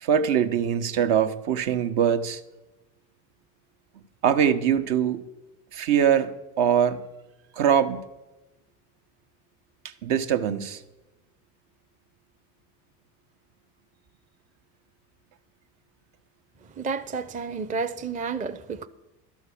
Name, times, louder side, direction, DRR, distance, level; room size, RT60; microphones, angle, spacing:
voice 1, 0.0-2.4 4.2-5.2 5.7-6.3 6.6-7.0 7.5-8.0 9.8-10.8, right 8 dB, 65° right, 1.0 m, -22 dB
voice 2, 16.7-18.9, right 5 dB, 15° right, 0.5 m, -31 dB
12.0 x 6.4 x 8.4 m
hypercardioid pair, 85°, 49 cm